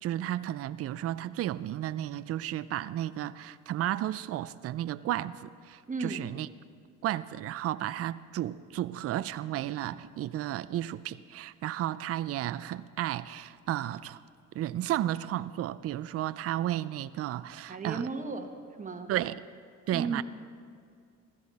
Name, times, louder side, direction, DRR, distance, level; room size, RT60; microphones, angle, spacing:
voice 1, 0.0-6.5 7.0-14.2 14.5-18.1 19.1-19.4 19.9-20.2, right 13 dB, 50° right, 15 dB, 0.5 m, -33 dB
voice 2, 5.9-6.2 17.7-19.1 19.9-20.2, right 4 dB, 25° right, 6 dB, 1.3 m, -35 dB
15.5 x 14.0 x 4.2 m, 2.2 s
supercardioid pair, 80°, 32 cm